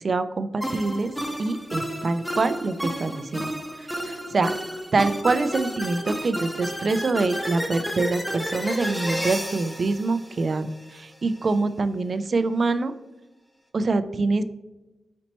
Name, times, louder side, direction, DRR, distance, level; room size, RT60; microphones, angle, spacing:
voice 1, 0.0-1.1 1.4-3.5 4.1-4.5 4.9-10.7 10.9-12.9 13.7-14.4, right 3 dB, 50° right, 12 dB, 0.3 m, -25 dB
sound 1, 0.6-11.0, equal, 5° left, 0.7 m, -32 dB
4.2 x 4.2 x 2.9 m, 1.1 s
wide cardioid pair, 95°, 0 cm